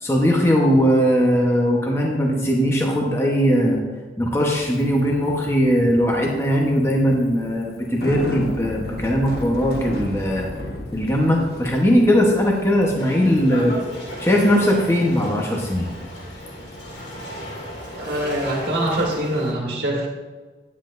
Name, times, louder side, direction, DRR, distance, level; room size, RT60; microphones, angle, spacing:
voice 1, 0.0-3.8 4.2-10.5 10.9-13.8 14.2-15.9, equal, 15° left, -1 dB, 1.0 m, -19 dB
Bicycle, 4.3-19.1, left 1 dB, 60° left, 1.1 m, -37 dB
sound 1, 13.0-19.5, equal, 85° left, 2.5 m, -36 dB
voice 2, 18.0-20.1, right 1 dB, 60° right, -2 dB, 1.6 m, -24 dB
9.9 x 9.4 x 2.6 m, 1.3 s
head